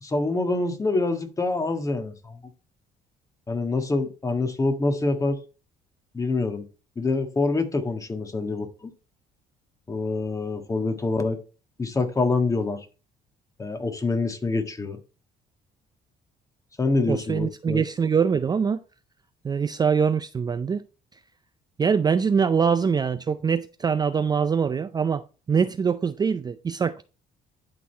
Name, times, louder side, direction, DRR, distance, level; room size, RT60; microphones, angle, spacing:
voice 1, 0.0-2.4 3.5-5.4 6.1-6.6 7.0-8.9 9.9-11.4 11.8-12.9 13.6-15.0 16.8-17.8, left 3 dB, 20° left, 1.6 m, -26 dB
voice 2, 17.1-18.8 19.4-20.8 21.8-25.2 25.5-27.0, right 6 dB, 25° right, 0.4 m, -23 dB
11.0 x 4.0 x 4.4 m
cardioid pair, 110°, 17 cm